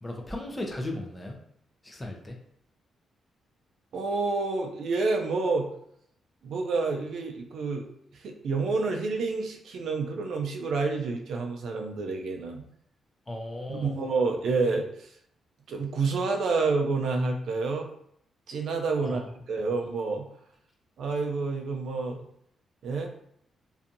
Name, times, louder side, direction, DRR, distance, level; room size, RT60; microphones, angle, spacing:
voice 1, 0.0-1.4 1.8-2.4 13.3-14.0 19.0-19.3, left 1 dB, 15° left, 2 dB, 0.4 m, -36 dB
voice 2, 3.9-5.7 6.4-7.9 8.1-12.6 13.7-15.1 15.7-17.9 18.5-19.2 19.5-20.3 21.0-22.2 22.8-23.1, right 3 dB, 70° right, 2 dB, 0.4 m, -28 dB
2.6 x 2.3 x 2.5 m, 0.69 s
cardioid pair, 135°, 0 cm